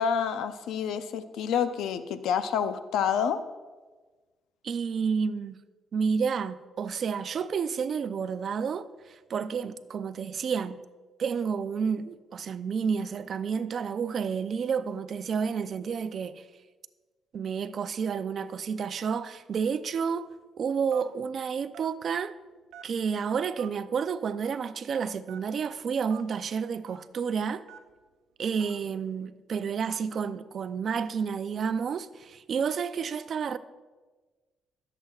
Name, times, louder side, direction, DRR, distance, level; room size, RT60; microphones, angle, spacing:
voice 1, 0.0-3.4, left 7 dB, 85° left, 0.6 m, -28 dB
voice 2, 4.6-5.6 5.9-10.8 11.2-16.5 17.3-20.3 20.6-22.4 22.8-27.6 28.4-33.6, right 6 dB, 55° right, 0.5 m, -30 dB
Telephone, 20.9-21.2 21.7-21.9 22.7-23.1 23.6-23.7 24.4-24.6 25.3-25.4 26.1-26.2 26.9-27.0 27.7-27.9 28.6-28.8, right 10 dB, 85° right, 0.7 m, -46 dB
18.5 x 7.8 x 2.4 m
cardioid pair, 90°, 0 cm